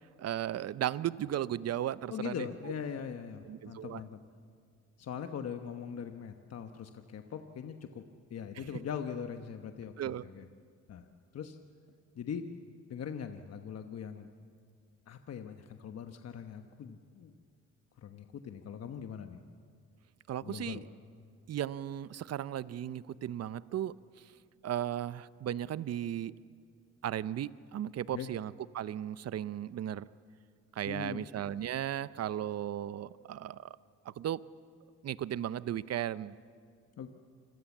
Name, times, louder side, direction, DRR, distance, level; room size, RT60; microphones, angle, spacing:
voice 1, 0.2-2.5 3.4-4.0 8.6-8.7 10.0-10.2 20.3-20.8 21.5-24.3 24.6-26.3 27.0-30.0 30.7-33.8 34.0-34.5 35.0-36.3, right 11 dB, 55° right, 17 dB, 0.7 m, -36 dB
voice 2, 2.1-4.2 5.0-8.0 8.3-10.5 10.9-11.1 11.3-11.6 12.1-12.5 12.9-14.3 15.1-17.3 18.0-19.4 20.4-20.8 28.1-28.3 30.8-31.3 37.0-37.1, left 7 dB, 55° left, 6 dB, 1.2 m, -41 dB
27.0 x 22.0 x 7.3 m, 2.2 s
cardioid pair, 90°, 30 cm